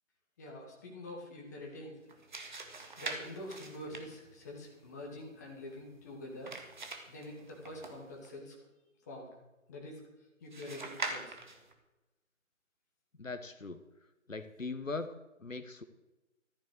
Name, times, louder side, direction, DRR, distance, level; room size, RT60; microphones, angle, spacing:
voice 1, 0.4-2.2 2.4-2.6 3.0-6.5 7.1-8.6 9.1-9.3 9.7-10.0 10.4-11.4, left 1 dB, 15° left, -1 dB, 1.8 m, -46 dB
sound 1, 2.0-8.3 10.5-11.7, right 3 dB, 35° right, 1.9 m, -44 dB
voice 2, 13.2-13.8 14.3-15.1 15.4-15.8, left 3 dB, 70° left, 11 dB, 1.4 m, -40 dB
14.0 x 10.0 x 6.4 m, 1.0 s
figure-of-eight pair, 155°, 40 cm